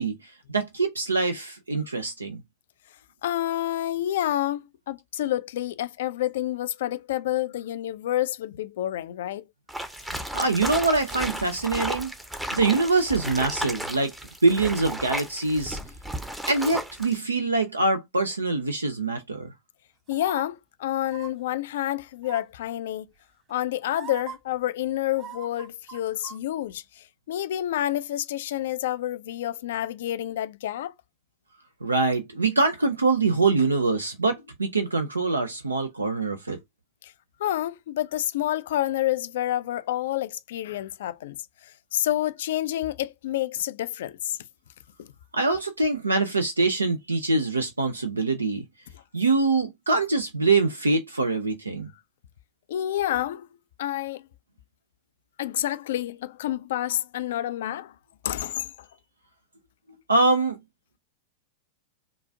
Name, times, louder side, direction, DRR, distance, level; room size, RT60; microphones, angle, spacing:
voice 1, 0.0-2.4 10.3-12.1 12.5-14.1 14.4-15.8 16.5-19.5 31.8-36.6 45.3-48.6 49.1-51.9 60.1-60.6, right 3 dB, 80° right, 0.5 m, -24 dB
voice 2, 3.2-9.5 10.1-10.2 20.1-23.1 23.5-30.9 37.0-37.1 37.4-44.4 45.0-45.1 52.7-53.5 53.8-54.2 55.4-57.9 58.2-58.9, left 13 dB, 55° left, 0.3 m, -29 dB
sound 1, 9.7-17.2, right 1 dB, 5° right, 0.6 m, -34 dB
sound 2, 20.1-20.5 21.0-21.3 22.2-22.6 23.5-23.6 23.9-24.4 25.1-26.4 26.7-26.8, right 8 dB, 35° right, 1.4 m, -41 dB
3.8 x 2.4 x 3.6 m
figure-of-eight pair, 90°, 0 cm